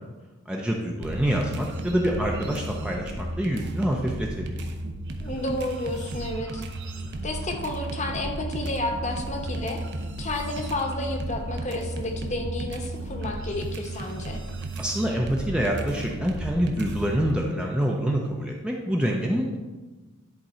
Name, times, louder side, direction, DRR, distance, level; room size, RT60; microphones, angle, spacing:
voice 1, 0.5-4.7 14.8-19.6, equal, 5° right, -1 dB, 0.5 m, -26 dB
sound 1, 1.0-17.3, right 1 dB, 50° right, 0.7 m, -34 dB
voice 2, 2.2-2.6 5.2-6.6 7.2-9.8 10.2-14.4, left 1 dB, 30° left, 3 dB, 0.9 m, -31 dB
10.5 x 3.7 x 4.3 m, 1.2 s
head